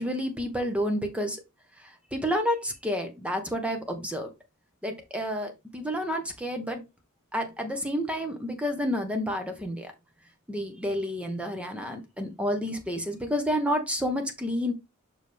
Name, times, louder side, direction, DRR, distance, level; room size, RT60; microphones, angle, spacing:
voice 1, 0.0-1.4 1.8-4.3 4.8-6.8 7.3-9.9 10.5-14.7, equal, 5° right, 1.2 m, -30 dB
6.1 x 4.8 x 3.4 m
head